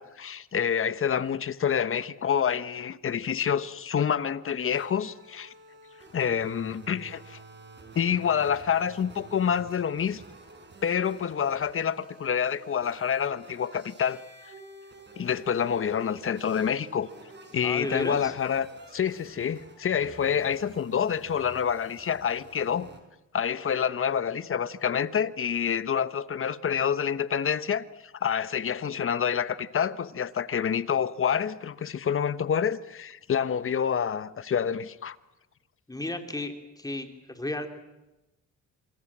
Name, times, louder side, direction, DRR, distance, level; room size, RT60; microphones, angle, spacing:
voice 1, 0.0-5.5 6.1-7.4 7.9-10.2 10.8-14.2 15.2-17.1 17.5-22.9 23.3-35.2, left 8 dB, 45° left, 1.2 m, -27 dB
sound 1, 4.7-23.0, right 3 dB, 35° right, 5.2 m, -50 dB
voice 2, 17.6-18.3 35.9-37.7, left 1 dB, 10° left, 3.1 m, -33 dB
27.0 x 24.0 x 7.5 m
cardioid pair, 90°, 30 cm